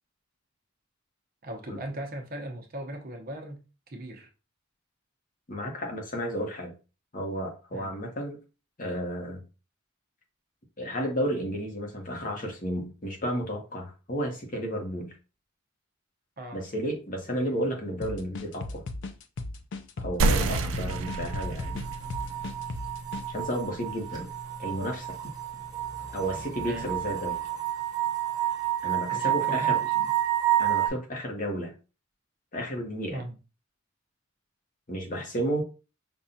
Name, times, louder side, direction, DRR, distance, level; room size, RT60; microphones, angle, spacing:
voice 1, 1.4-3.6 3.9-4.3 7.7-8.0 16.4-16.6 26.6-26.9 29.1-30.1 33.1-33.4, right 1 dB, 50° right, 0.8 m, -38 dB
voice 2, 5.5-6.7 7.1-8.4 8.8-9.4 10.8-15.1 16.5-18.8 20.0-21.8 23.3-24.3 24.6-25.2 26.1-27.4 28.8-29.8 30.6-31.7 32.5-33.2 34.9-35.6, equal, 40° left, 0.9 m, -32 dB
sound 1, 18.0-23.2, left 2 dB, 60° left, 0.5 m, -37 dB
sound 2, 20.2-25.3, right 3 dB, 80° right, 0.4 m, -31 dB
sound 3, 20.9-30.9, right 13 dB, 20° right, 1.4 m, -30 dB
5.3 x 2.3 x 2.7 m
head